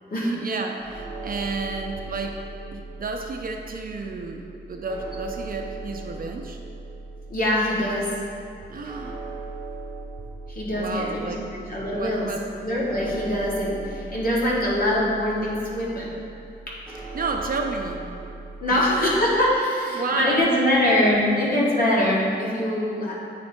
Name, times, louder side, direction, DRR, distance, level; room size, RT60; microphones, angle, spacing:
voice 1, 0.2-2.4 2.7-6.6 8.7-9.2 10.7-12.5 17.1-18.1 18.7-19.2 19.9-20.6, right 3 dB, 50° right, 3 dB, 0.5 m, -31 dB
sound 1, 0.8-19.6, right 3 dB, 5° right, 0.8 m, -39 dB
voice 2, 7.3-8.1 10.5-12.3 12.6-16.1 16.7-17.1 18.6-23.1, left 1 dB, 50° left, -6 dB, 1.5 m, -23 dB
8.9 x 3.2 x 4.3 m, 2.6 s
wide cardioid pair, 170°, 19 cm